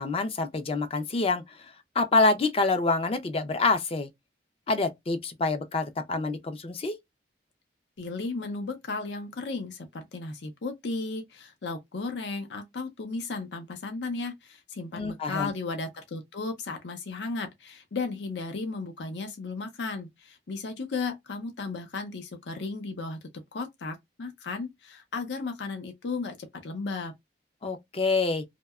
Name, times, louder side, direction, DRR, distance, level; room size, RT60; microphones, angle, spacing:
voice 1, 0.0-4.1 4.7-7.0 14.9-15.5 27.6-28.4, left 3 dB, 35° left, 0.4 m, -27 dB
voice 2, 8.0-23.2 23.5-27.1, left 3 dB, 80° left, 0.6 m, -35 dB
2.7 x 2.1 x 2.3 m
head